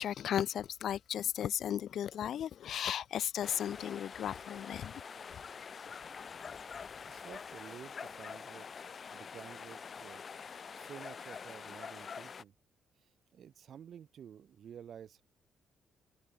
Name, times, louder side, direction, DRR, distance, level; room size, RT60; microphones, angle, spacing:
voice 1, 0.0-4.9 5.3-5.7, left 10 dB, 65° left, 2.3 m, -35 dB
sound 1, 3.4-12.4, left 6 dB, 45° left, 6.9 m, -46 dB
voice 2, 7.1-8.7 9.1-12.5 13.0-15.2, right 9 dB, 60° right, 6.7 m, -52 dB
cardioid pair, 90°, 0 cm